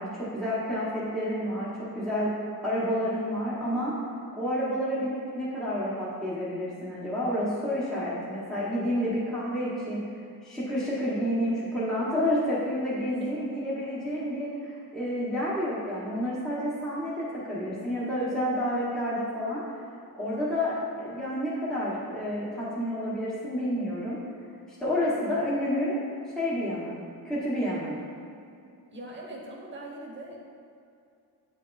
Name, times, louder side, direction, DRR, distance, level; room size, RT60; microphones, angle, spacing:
voice 1, 0.0-3.9 4.4-10.0 10.4-19.6 20.2-24.2 24.8-26.0 26.3-27.0 27.2-28.0, equal, ahead, -10 dB, 1.1 m, -29 dB
voice 2, 28.9-30.4, right 1 dB, 30° right, -3 dB, 1.1 m, -41 dB
9.0 x 4.1 x 2.6 m, 2.5 s
wide cardioid pair, 145°, 37 cm